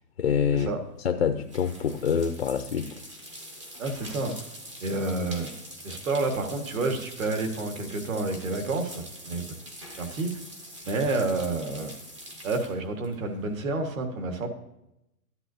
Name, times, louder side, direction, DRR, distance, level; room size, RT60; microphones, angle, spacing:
voice 1, 0.2-0.7 1.0-3.0, left 7 dB, 45° left, 8 dB, 0.4 m, -26 dB
sound 1, 0.7-13.9, equal, 20° right, 0.6 m, -44 dB
voice 2, 3.8-4.4 4.8-5.5 5.8-9.6 10.0-10.3 10.8-11.9 12.4-14.5, right 3 dB, 55° right, 5 dB, 1.8 m, -29 dB
13.0 x 10.0 x 2.8 m, 0.85 s
hypercardioid pair, 165°, 47 cm